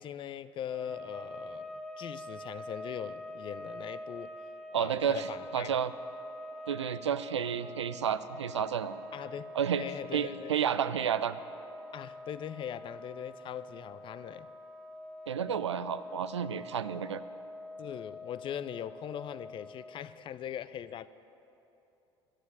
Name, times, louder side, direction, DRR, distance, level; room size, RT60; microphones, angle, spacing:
voice 1, 0.0-4.3 4.7-5.8 9.1-9.5 9.8-10.8 11.9-14.5 17.8-21.1, left 9 dB, 35° left, 15 dB, 0.4 m, -41 dB
sound 1, 0.6-20.3, left 1 dB, ahead, 0.8 m, -45 dB
voice 2, 4.7-5.3 5.5-5.9 6.7-9.0 9.5-9.8 10.1-11.4 15.3-17.2, right 8 dB, 80° right, 13 dB, 0.4 m, -31 dB
11.5 x 7.4 x 9.1 m, 2.9 s
figure-of-eight pair, 65°, 15 cm